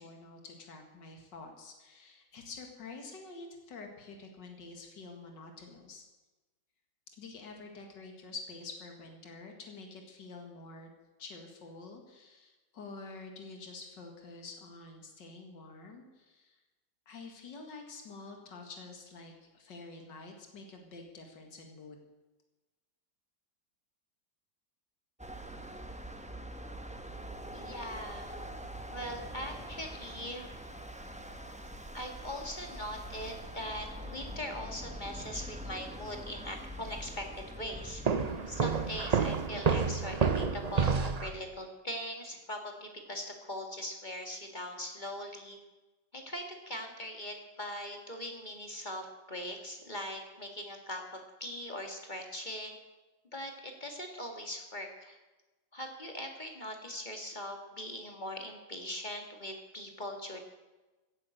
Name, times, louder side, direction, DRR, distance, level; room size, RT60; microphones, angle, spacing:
voice 1, 0.0-6.0 7.1-10.9 11.2-16.6 17.1-22.0, left 3 dB, 80° left, 3 dB, 2.7 m, -48 dB
sound 1, 25.2-39.5, equal, 5° right, 0.9 m, -44 dB
voice 2, 27.5-28.4 28.9-30.5 31.9-38.0 38.5-45.6 46.1-52.8 53.3-55.2 55.7-60.4, equal, 25° left, 3 dB, 2.0 m, -41 dB
Walk footsteps, 38.1-41.4, right 5 dB, 55° right, 0.4 m, -29 dB
17.0 x 9.7 x 7.9 m, 1.1 s
omnidirectional pair, 1.9 m